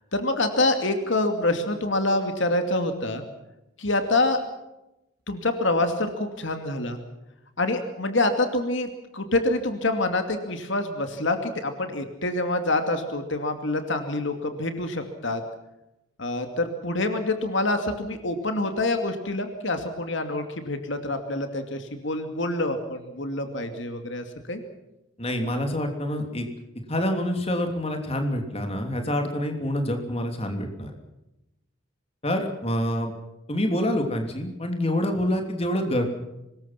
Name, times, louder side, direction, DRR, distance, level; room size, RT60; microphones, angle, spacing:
voice 1, 0.1-3.2 3.8-4.4 5.3-7.0 7.6-15.4 16.2-24.6, left 2 dB, 65° left, 7 dB, 2.5 m, -26 dB
voice 2, 25.2-26.5 26.9-30.9 32.2-33.1 33.5-36.0, left 1 dB, 30° left, 4 dB, 3.1 m, -26 dB
25.0 x 21.0 x 5.9 m, 0.92 s
head